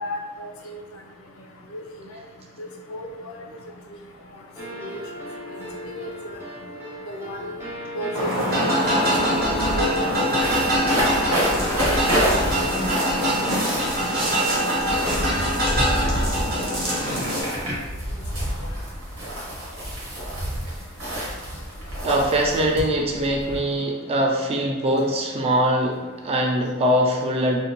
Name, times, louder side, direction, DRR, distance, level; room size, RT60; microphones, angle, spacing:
voice 1, 0.0-0.8 1.7-1.8 2.6-3.3 4.8-5.0 5.9-6.1 7.1-7.5 7.9-8.7 9.7-10.1 10.9-12.1 12.5-13.0 13.5-13.6 14.9-15.1 16.0-16.1 17.6-17.7, equal, 75° left, 2 dB, 0.4 m, -32 dB
sound 1, 4.6-12.3, equal, 10° right, 0.7 m, -37 dB
sound 2, 8.1-17.4, equal, 50° right, 0.9 m, -23 dB
sound 3, 9.2-23.6, equal, 75° right, 1.0 m, -28 dB
voice 2, 22.0-27.6, equal, 30° right, 0 dB, 0.4 m, -22 dB
2.5 x 2.1 x 2.8 m, 1.2 s
head